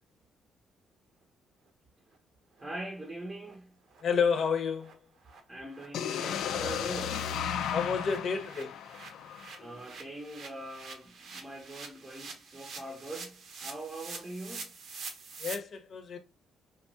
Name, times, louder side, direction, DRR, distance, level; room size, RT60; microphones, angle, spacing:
voice 1, 2.6-3.8 5.5-7.3 9.6-14.7, right 1 dB, 20° right, 0.7 m, -42 dB
sound 1, 2.6-2.7 3.0-3.1 3.4-3.6 3.9-4.0 4.3-4.5 4.8-4.9 5.3-5.4 5.6-15.5, right 4 dB, 65° right, 0.8 m, -46 dB
voice 2, 4.0-5.0 7.7-8.8 15.4-16.2, left 6 dB, 55° left, 0.7 m, -30 dB
sound 2, 5.9-9.8, left 8 dB, 80° left, 0.3 m, -34 dB
2.9 x 2.3 x 2.8 m
cardioid pair, 90°, 0 cm